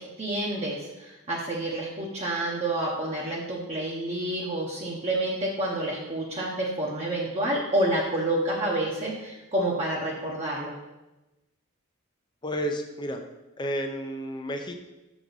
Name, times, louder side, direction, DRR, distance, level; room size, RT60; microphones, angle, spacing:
voice 1, 0.0-10.7, right 1 dB, 30° right, -4 dB, 0.9 m, -29 dB
voice 2, 12.4-13.2 13.6-14.8, equal, 20° left, 4 dB, 0.6 m, -31 dB
6.1 x 5.8 x 4.0 m, 1.0 s
head